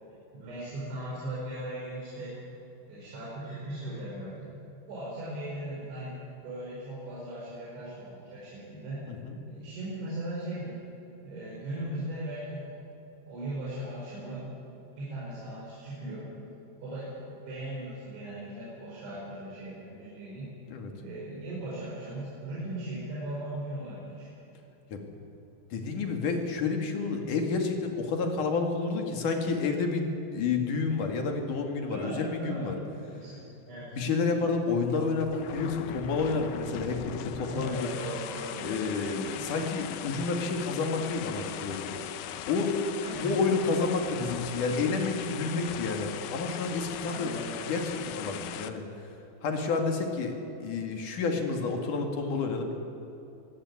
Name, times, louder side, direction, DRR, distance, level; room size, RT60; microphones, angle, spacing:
voice 1, 0.4-2.3 2.9-4.5 4.9-6.1 6.4-9.1 9.5-10.7 11.2-12.8 13.3-14.6 15.0-16.3 16.8-20.5 21.0-24.3 31.9-33.9 37.4-39.6 43.0-43.3 47.0-47.7, right 1 dB, 85° right, -7 dB, 7.8 m, -38 dB
voice 2, 25.7-30.1 30.3-32.8 33.9-37.9 38.6-41.9 42.5-42.7 43.2-47.3 47.6-48.8 49.4-52.9, left 4 dB, 50° left, 4 dB, 3.3 m, -30 dB
sound 1, 34.8-48.7, left 10 dB, 75° left, 2.4 m, -39 dB
23.5 x 17.0 x 9.8 m, 2.8 s
omnidirectional pair, 5.2 m